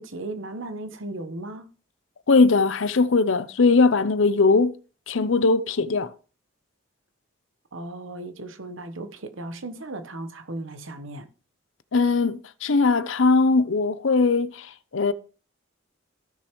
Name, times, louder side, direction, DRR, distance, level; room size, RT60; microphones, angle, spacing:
voice 1, 0.0-1.7 7.7-11.3, right 2 dB, 70° right, 1.1 m, -36 dB
voice 2, 2.3-4.7 5.1-6.1 11.9-15.1, left 3 dB, 70° left, 0.6 m, -20 dB
15.5 x 6.6 x 3.1 m
head